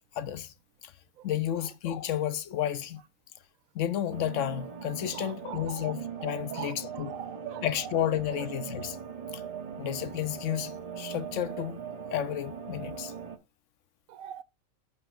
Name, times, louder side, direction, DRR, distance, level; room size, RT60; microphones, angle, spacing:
voice 1, 0.2-0.5 0.8-0.9 1.2-3.0 3.7-7.1 7.6-9.0 9.3-9.4 9.8-11.8 12.1-13.1, left 11 dB, 70° left, 0.9 m, -32 dB
sound 1, 4.1-13.4, right 7 dB, 30° right, 1.1 m, -40 dB
voice 2, 5.1-5.9 6.5-7.7 14.1-14.4, right 12 dB, 75° right, 1.0 m, -41 dB
14.0 x 5.4 x 2.5 m
omnidirectional pair, 1.5 m